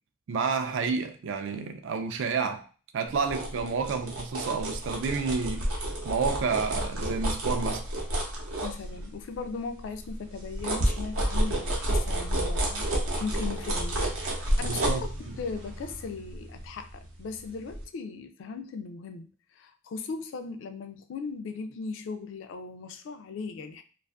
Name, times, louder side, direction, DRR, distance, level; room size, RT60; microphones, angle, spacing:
voice 1, 0.3-2.7 2.9-5.7 6.0-7.9 14.6-15.4, right 5 dB, 65° right, 0.3 m, -30 dB
sound 1, 3.1-9.4 9.8-17.3 17.7-17.8, right 1 dB, 80° right, 0.7 m, -30 dB
voice 2, 8.6-12.9 13.2-23.8, left 4 dB, 60° left, 0.3 m, -38 dB
2.5 x 2.4 x 2.3 m
head